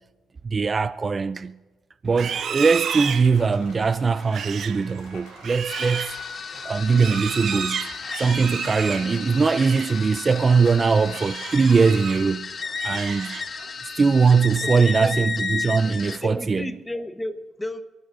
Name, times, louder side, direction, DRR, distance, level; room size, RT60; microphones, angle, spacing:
voice 1, 0.4-1.5 2.0-6.1 6.6-7.9 8.2-12.5 12.8-13.4 14.0-16.7, right 5 dB, 35° right, 0.3 m, -21 dB
Livestock farm animals working animals, 2.1-10.0 10.3-10.6 11.0-12.3 12.6-13.7, right 8 dB, 60° right, 0.8 m, -33 dB
sound 1, 2.7-12.2, left 5 dB, 90° left, 2.8 m, -48 dB
sound 2, 5.6-16.2, left 5 dB, 45° left, 1.1 m, -33 dB
voice 2, 14.6-15.2 16.2-17.8, left 1 dB, 10° left, 1.1 m, -32 dB
29.0 x 12.0 x 2.5 m
cardioid pair, 90°, 0 cm